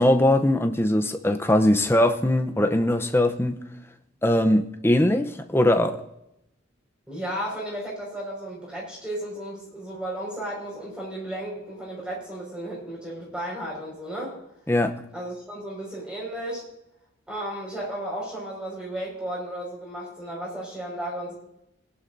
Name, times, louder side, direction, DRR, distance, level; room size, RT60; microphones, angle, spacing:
voice 1, 0.0-3.6 4.2-6.0 14.7-14.9, left 1 dB, 10° left, 6 dB, 0.6 m, -21 dB
voice 2, 7.1-14.4 15.1-16.6 17.3-21.3, right 1 dB, 5° right, -3 dB, 5.2 m, -34 dB
20.0 x 11.0 x 2.6 m, 0.84 s
head